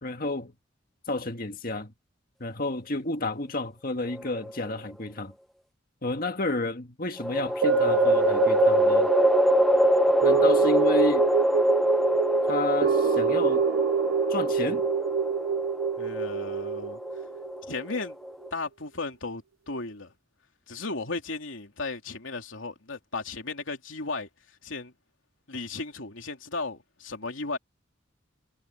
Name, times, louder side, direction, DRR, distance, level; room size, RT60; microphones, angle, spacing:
voice 1, 0.0-0.5 1.1-1.9 2.4-5.3 6.0-9.1 10.2-11.3 12.5-13.6 14.3-14.8, left 2 dB, 45° left, 1.8 m, -31 dB
sound 1, 4.1-4.9 7.2-18.5, equal, ahead, 0.8 m, -25 dB
sound 2, 7.6-18.0 18.4-18.5, right 6 dB, 80° right, 0.6 m, -26 dB
voice 2, 16.0-17.0 17.7-18.2 18.5-20.1 20.7-24.3 24.6-24.9 25.5-27.6, left 3 dB, 75° left, 3.0 m, -35 dB
head